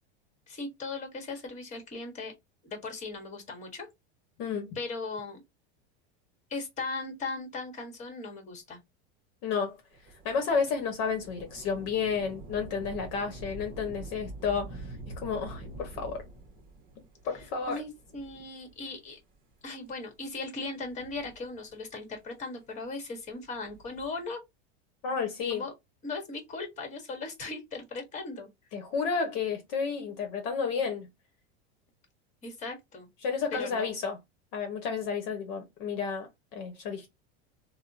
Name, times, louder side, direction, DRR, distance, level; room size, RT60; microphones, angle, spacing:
voice 1, 0.5-2.3 2.6-3.9 4.7-5.4 6.5-8.8 17.7-19.2 19.6-24.4 25.5-25.7 26.0-28.5 32.4-33.1 33.5-33.9, left 3 dB, 25° left, 1.3 m, -38 dB
voice 2, 4.4-4.8 9.4-9.8 10.2-14.8 15.1-16.2 17.2-17.8 25.0-25.6 28.7-31.1 33.2-34.2 34.5-37.1, left 5 dB, 55° left, 1.0 m, -31 dB
Thunder / Rain, 9.9-18.9 19.6-19.7 20.7-21.9 23.5-24.2, right 2 dB, 30° right, 1.0 m, -46 dB
3.5 x 2.2 x 2.6 m
supercardioid pair, 140°, 30 cm